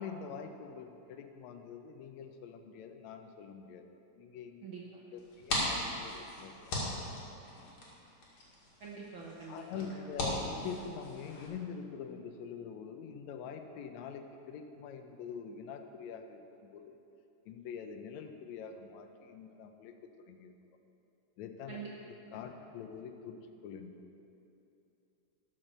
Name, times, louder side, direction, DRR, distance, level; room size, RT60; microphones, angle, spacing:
voice 1, 0.0-3.9 4.2-4.7 5.1-6.7 9.5-17.0 17.5-19.9 20.3-20.5 21.4-21.8 22.3-23.4 23.6-24.1, left 6 dB, 75° left, 6 dB, 1.8 m, -45 dB
voice 2, 4.6-5.0 8.8-10.0 21.7-21.9 22.3-22.4, right 5 dB, 75° right, -4 dB, 1.1 m, -45 dB
sound 1, 5.2-11.5, left 1 dB, 55° left, 3.0 m, -39 dB
13.0 x 6.3 x 6.6 m, 2.8 s
omnidirectional pair, 3.8 m